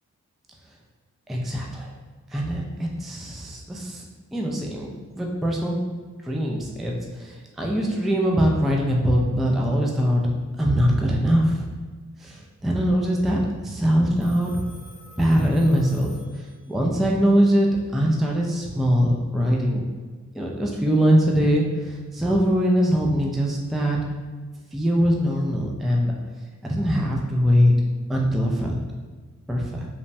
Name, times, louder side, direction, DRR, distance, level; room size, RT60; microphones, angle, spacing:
voice 1, 1.3-1.9 2.3-4.0 4.3-4.9 5.2-5.8 6.2-10.2 10.6-11.7 12.2-14.5 15.2-19.8 20.3-24.0 24.7-26.1 26.6-27.7 28.1-28.7 29.5-29.9, equal, ahead, -1 dB, 0.3 m, -22 dB
Telephone, 14.2-16.9, left 1 dB, 20° left, 0.8 m, -50 dB
3.1 x 2.1 x 2.6 m, 1.4 s
cardioid pair, 65°, 31 cm